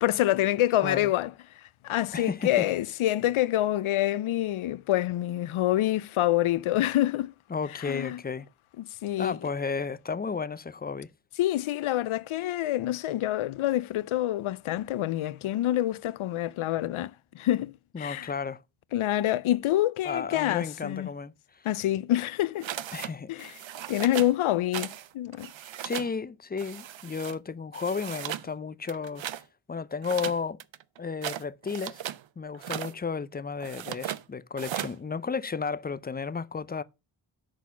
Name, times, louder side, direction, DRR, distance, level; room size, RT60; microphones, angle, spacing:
voice 1, 0.0-1.3 1.8-7.3 7.7-8.2 8.8-9.4 11.4-18.3 18.9-21.1 21.6-22.7 23.3-23.6 23.9-25.5, left 14 dB, 75° left, 0.5 m, -27 dB
voice 2, 2.1-2.7 7.5-8.5 9.2-11.1 17.9-18.6 20.0-21.3 22.9-23.3 25.8-29.2 29.7-30.6 31.0-32.0 32.4-36.8, left 5 dB, 20° left, 0.4 m, -33 dB
sound 1, 22.6-23.1 23.4-24.3 24.7-25.1 25.3-26.1 26.6-27.4 27.7-28.5 28.8-29.4 30.0-32.2 32.5-32.9 33.6-34.2 34.6-35.0, right 11 dB, 65° right, 0.6 m, -37 dB
6.4 x 4.1 x 5.6 m
cardioid pair, 70°, 49 cm